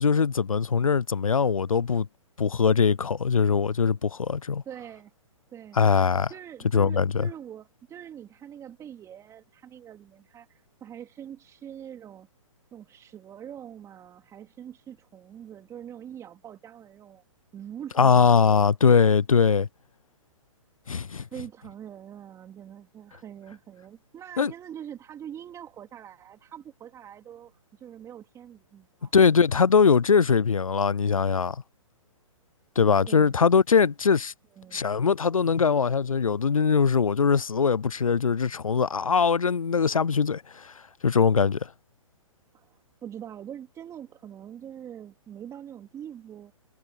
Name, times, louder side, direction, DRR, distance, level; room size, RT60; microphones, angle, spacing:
voice 1, 0.0-2.1 2.4-4.6 5.8-6.3 6.7-7.3 18.0-19.7 20.9-21.2 24.4-24.5 29.1-31.6 32.8-34.3 34.7-40.7 41.0-41.6, left 6 dB, 90° left, 0.6 m, -21 dB
voice 2, 4.6-5.1 5.5-5.9 6.3-12.3 12.7-17.2 17.5-18.7 21.2-29.1 33.1-33.4 34.5-34.8 42.5-46.5, right 9 dB, 15° right, 3.2 m, -44 dB
figure-of-eight pair, 125°, 17 cm